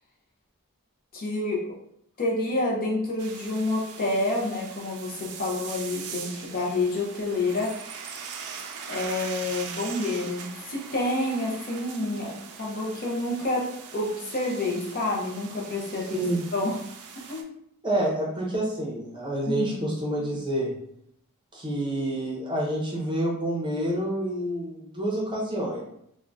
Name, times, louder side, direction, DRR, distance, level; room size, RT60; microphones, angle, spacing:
voice 1, 1.1-1.7 2.2-7.7 8.9-13.7 13.9-16.2 16.5-16.8 17.3-17.5 19.5-19.8, left 2 dB, 40° left, -2 dB, 0.5 m, -28 dB
sound 1, 3.2-17.4, right 6 dB, 80° right, 0.4 m, -41 dB
voice 2, 16.1-16.4 17.8-20.7 21.5-25.8, right 1 dB, 20° right, -3 dB, 0.7 m, -28 dB
3.5 x 2.1 x 2.5 m, 0.73 s
head